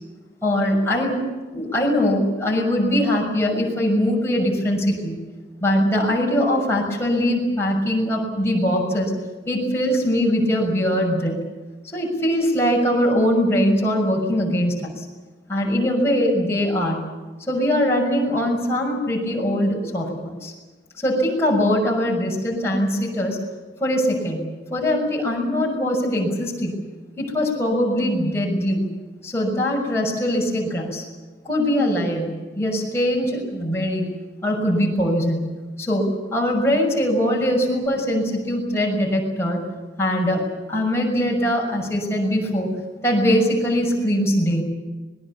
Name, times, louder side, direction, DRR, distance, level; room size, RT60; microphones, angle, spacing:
voice 1, 0.4-1.2 1.5-5.2 5.6-9.1 9.5-11.4 11.9-15.0 15.5-17.0 17.5-20.5 21.0-23.4 23.8-24.4 24.7-26.8 27.2-28.8 29.2-31.0 31.4-34.1 34.4-35.5 35.8-39.6 40.0-42.7 43.0-44.6, equal, 15° left, -2 dB, 6.3 m, -21 dB
25.5 x 21.0 x 7.3 m, 1.2 s
head